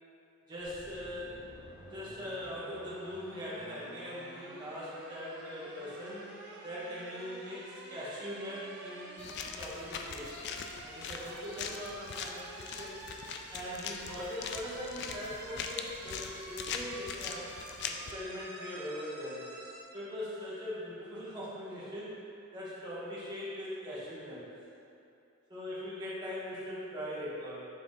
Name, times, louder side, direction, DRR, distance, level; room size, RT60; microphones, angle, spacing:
voice 1, 0.5-1.5 1.9-6.2 6.6-9.3 9.6-10.3 10.8-13.0 13.5-17.5 17.9-19.4 19.9-22.1 22.5-24.4 25.5-27.7, equal, 20° right, -10 dB, 1.2 m, -41 dB
sound 1, 0.6-19.8, right 1 dB, 50° right, 1.1 m, -49 dB
sound 2, 9.2-18.1, left 6 dB, 50° left, 0.3 m, -41 dB
7.4 x 3.4 x 3.9 m, 2.7 s
head